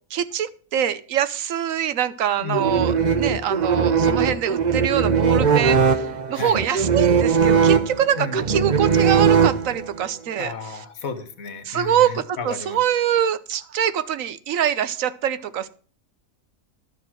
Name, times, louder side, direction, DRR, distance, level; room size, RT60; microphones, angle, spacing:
voice 1, 0.1-10.8 11.6-15.7, right 10 dB, 75° right, 14 dB, 1.2 m, -24 dB
voice 2, 2.4-3.2 6.3-6.6 8.2-8.7 10.4-12.8, left 5 dB, 80° left, 11 dB, 1.7 m, -33 dB
sound 1, 2.5-10.0, right 6 dB, 40° right, 0.8 m, -19 dB
11.5 x 6.9 x 6.2 m, 0.42 s
omnidirectional pair, 1.4 m